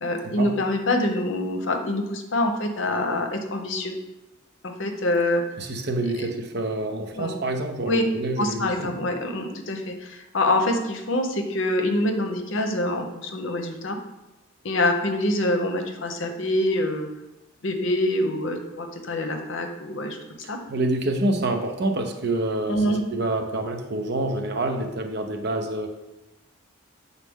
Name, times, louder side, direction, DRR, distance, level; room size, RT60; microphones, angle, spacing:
voice 1, 0.0-3.9 4.6-5.4 6.2-6.3 7.2-7.3 7.9-8.0 8.4-14.0 14.6-17.1 17.6-20.2 20.5-20.6 22.7-23.0, left 1 dB, 65° left, 5 dB, 0.8 m, -25 dB
voice 2, 5.6-8.9 20.7-25.9, right 2 dB, 55° right, 4 dB, 0.7 m, -27 dB
7.3 x 4.0 x 3.6 m, 0.96 s
head